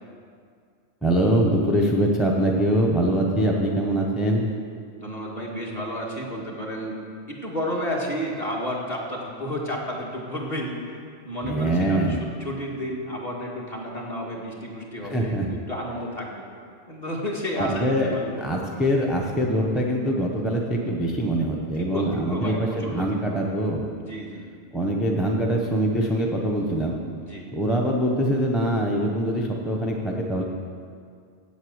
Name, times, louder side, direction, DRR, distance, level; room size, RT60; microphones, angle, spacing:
voice 1, 1.0-4.4 11.4-12.2 15.1-15.5 17.6-18.1 18.4-23.9 24.7-26.9 27.5-30.4, right 1 dB, ahead, -2 dB, 0.8 m, -23 dB
voice 2, 5.0-7.0 7.3-10.9 11.2-16.5 16.9-18.8 21.7-23.4 24.1-24.4 27.2-27.5, equal, 35° left, -3 dB, 1.8 m, -31 dB
8.1 x 8.0 x 7.9 m, 2.2 s
omnidirectional pair, 1.2 m